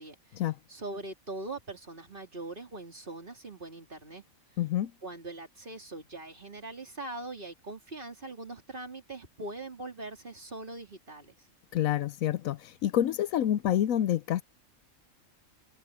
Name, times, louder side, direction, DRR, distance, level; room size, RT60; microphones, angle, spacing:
voice 1, 0.0-0.4 0.7-4.2 5.0-11.4, right 2 dB, 40° right, 3.5 m, -42 dB
voice 2, 4.6-4.9 11.7-14.4, left 11 dB, 75° left, 1.0 m, -28 dB
omnidirectional pair, 1.5 m